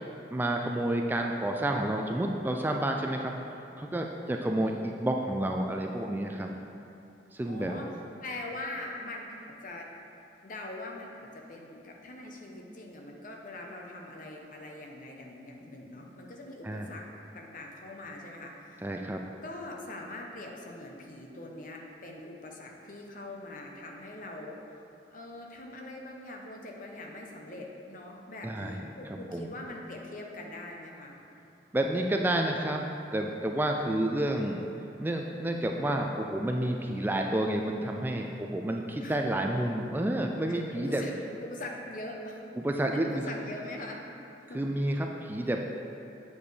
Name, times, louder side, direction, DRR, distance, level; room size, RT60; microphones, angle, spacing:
voice 1, 0.3-3.3 3.8-6.5 7.3-7.8 16.6-16.9 18.8-19.2 28.4-28.9 29.3-29.5 31.7-32.9 33.1-41.0 42.6-43.2 44.5-45.7, right 1 dB, 10° right, 2 dB, 0.3 m, -30 dB
voice 2, 4.3-5.0 7.4-7.9 8.2-9.9 10.4-17.0 17.3-18.9 19.4-24.6 25.1-31.2 33.8-34.4 39.0-39.2 40.5-41.1 41.4-42.4 42.9-44.0 44.5-44.6, left 2 dB, 50° left, 0 dB, 0.9 m, -42 dB
8.0 x 7.0 x 3.3 m, 2.7 s
head